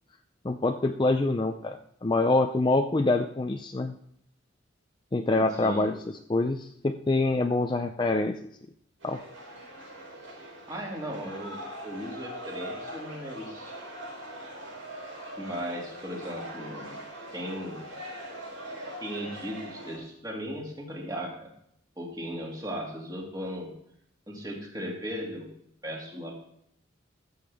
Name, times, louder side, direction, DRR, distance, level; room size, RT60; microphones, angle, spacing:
voice 1, 0.4-3.9 5.1-5.9 6.3-8.4 9.0-9.2, left 2 dB, 25° left, 6 dB, 0.4 m, -25 dB
voice 2, 5.4-5.9 10.7-13.7 15.4-17.0 17.3-17.8 19.0-21.5 22.0-23.7 24.3-25.5 25.8-26.3, equal, 20° right, -1 dB, 2.4 m, -37 dB
sound 1, 9.0-20.0, right 1 dB, 80° right, 5.1 m, -42 dB
13.5 x 7.9 x 3.5 m, 0.71 s
head